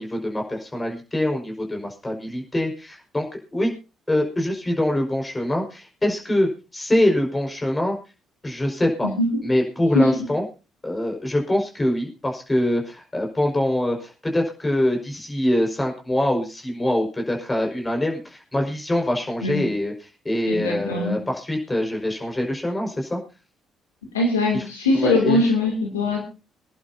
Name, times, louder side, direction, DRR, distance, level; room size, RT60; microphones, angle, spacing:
voice 1, 0.0-3.3 3.5-3.7 4.1-8.0 8.4-9.1 9.4-10.4 10.8-19.9 20.3-23.2 24.5-24.7 24.9-25.4, left 1 dB, 20° left, 2 dB, 5.2 m, -24 dB
voice 2, 9.9-10.3 19.4-19.6 20.5-21.2 24.1-26.2, left 2 dB, 85° left, 1 dB, 2.8 m, -21 dB
25.0 x 11.0 x 2.8 m, 0.32 s
hypercardioid pair, 45°, 0 cm